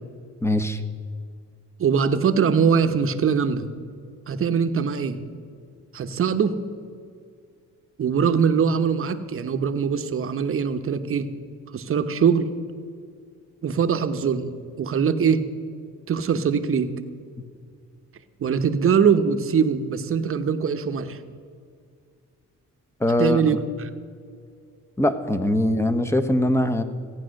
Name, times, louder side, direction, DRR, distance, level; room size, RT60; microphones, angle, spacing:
voice 1, 0.4-0.8 17.4-17.5 23.0-23.4 25.0-26.8, left 1 dB, 10° left, 9 dB, 1.0 m, -22 dB
voice 2, 1.8-3.7 4.3-5.2 5.9-6.5 8.0-11.3 11.7-12.5 13.6-14.5 14.8-15.4 16.1-16.9 18.4-21.2 23.2-23.6, right 6 dB, 45° right, 9 dB, 1.0 m, -22 dB
15.0 x 9.3 x 6.5 m, 2.2 s
cardioid pair, 90°, 30 cm